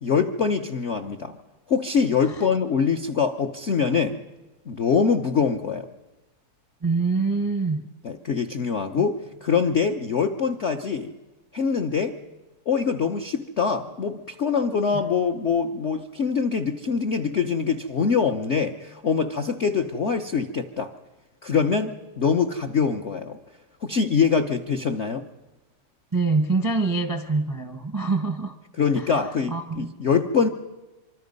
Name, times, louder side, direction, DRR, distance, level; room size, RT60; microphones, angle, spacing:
voice 1, 0.0-1.4 1.7-4.2 4.7-5.9 8.0-11.1 11.5-12.2 12.7-20.9 21.4-23.4 23.8-25.2 28.8-30.5, left 6 dB, 60° left, 5 dB, 0.7 m, -24 dB
voice 2, 6.8-7.8 26.1-28.5 29.5-29.9, right 3 dB, 25° right, 8 dB, 0.5 m, -24 dB
25.0 x 25.0 x 5.3 m, 1.1 s
omnidirectional pair, 2.4 m